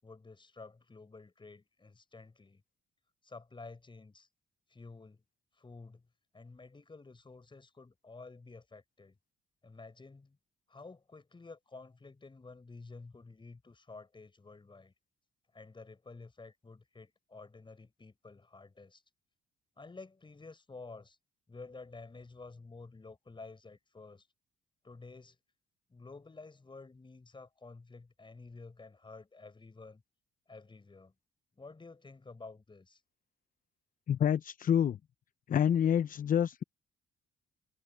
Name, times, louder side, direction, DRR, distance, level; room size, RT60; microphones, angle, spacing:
voice 1, 0.0-2.6 3.2-4.3 4.7-5.2 5.5-6.1 6.3-9.2 9.6-10.4 10.7-14.9 15.5-19.0 19.8-21.2 21.5-24.3 24.8-25.4 25.9-30.0 30.5-31.1 31.5-33.0, left 3 dB, 25° left, 6.0 m, -51 dB
voice 2, 34.1-35.0 35.5-36.6, left 9 dB, 45° left, 0.5 m, -27 dB
cardioid pair, 90°, 20 cm